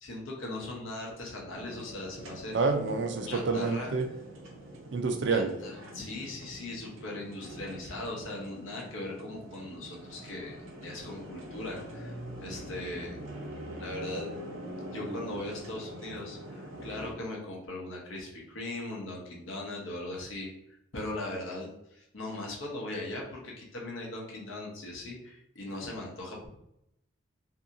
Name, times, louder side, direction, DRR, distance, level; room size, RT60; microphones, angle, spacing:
voice 1, 0.0-2.6 3.3-3.9 5.3-13.2 13.8-14.3 14.9-20.5 20.9-26.5, left 2 dB, 80° left, -2 dB, 0.8 m, -39 dB
sound 1, 1.5-17.1, right 1 dB, 90° right, 0.7 m, -44 dB
voice 2, 2.5-4.0 4.9-5.5, right 4 dB, 60° right, 5 dB, 0.4 m, -28 dB
2.7 x 2.7 x 2.5 m, 0.80 s
head